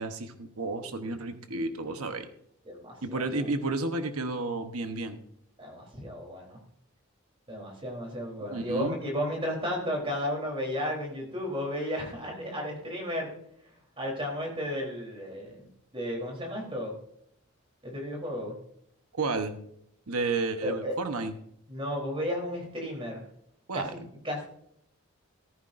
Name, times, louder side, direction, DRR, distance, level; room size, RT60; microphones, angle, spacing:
voice 1, 0.0-2.3 3.0-5.2 8.5-9.0 19.1-19.5 20.1-21.3 23.7-23.9, right 3 dB, 85° right, 8 dB, 1.1 m, -31 dB
voice 2, 2.7-3.2 5.6-6.6 7.5-13.3 14.0-15.6 15.9-16.9 17.8-18.6 20.6-20.9 21.7-23.2 23.7-24.0 24.2-24.5, equal, 25° right, 0 dB, 3.5 m, -33 dB
14.5 x 14.0 x 2.6 m, 0.71 s
head